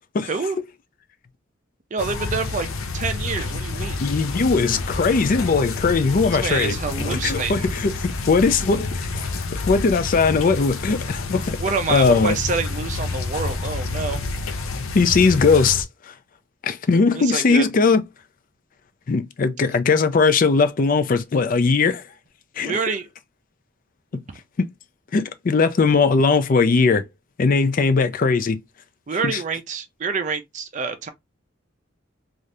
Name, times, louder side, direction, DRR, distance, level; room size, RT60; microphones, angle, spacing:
voice 1, 0.2-0.6 1.9-2.7 2.9-4.0 6.4-7.7 11.6-14.3 17.1-17.7 22.6-23.1 24.1-24.2 29.1-31.1, right 5 dB, 35° right, 0.4 m, -27 dB
sound 1, 2.0-15.8, left 3 dB, 85° left, 0.6 m, -29 dB
voice 2, 4.0-9.3 9.7-11.6 11.9-12.3 14.9-16.1 16.6-18.0 19.1-22.0 22.6-22.8 24.6-24.7 25.1-27.0 27.4-28.6 29.2-29.4, left 4 dB, 40° left, 0.4 m, -19 dB
2.7 x 2.4 x 3.2 m
head